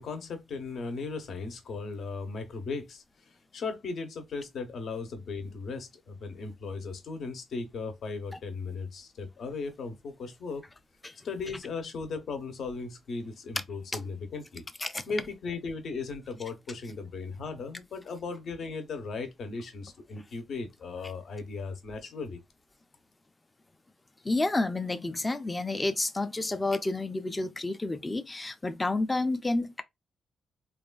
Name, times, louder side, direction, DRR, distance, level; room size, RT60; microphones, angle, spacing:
voice 1, 0.0-3.0 3.5-10.6 11.2-14.6 15.1-22.4, left 4 dB, 65° left, 0.7 m, -37 dB
voice 2, 24.2-29.8, left 2 dB, 20° left, 0.4 m, -30 dB
3.1 x 2.3 x 2.2 m
cardioid pair, 115°, 0 cm